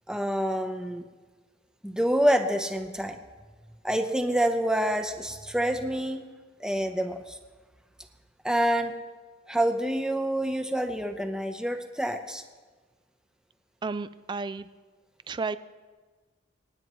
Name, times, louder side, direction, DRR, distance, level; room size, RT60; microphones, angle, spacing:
voice 1, 0.1-1.0 1.8-3.2 3.8-6.3 6.6-7.4 8.4-8.9 9.5-12.4, equal, 5° right, 6 dB, 0.8 m, -27 dB
voice 2, 13.8-14.7 15.3-15.6, right 4 dB, 25° right, 15 dB, 0.4 m, -32 dB
27.0 x 9.4 x 3.1 m, 1.4 s
head